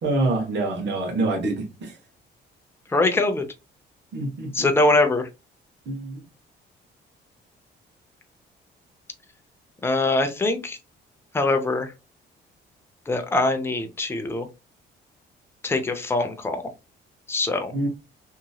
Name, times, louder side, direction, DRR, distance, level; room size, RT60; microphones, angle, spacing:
voice 1, 0.0-2.0 4.1-4.7 5.9-6.2 17.7-17.9, right 2 dB, 65° right, 1.1 m, -26 dB
voice 2, 2.9-3.4 4.5-5.3 9.8-10.8 11.3-11.9 13.1-14.5 15.6-16.6 17.3-17.7, left 2 dB, 10° left, 0.6 m, -22 dB
2.9 x 2.7 x 2.3 m
cardioid pair, 90°, 20 cm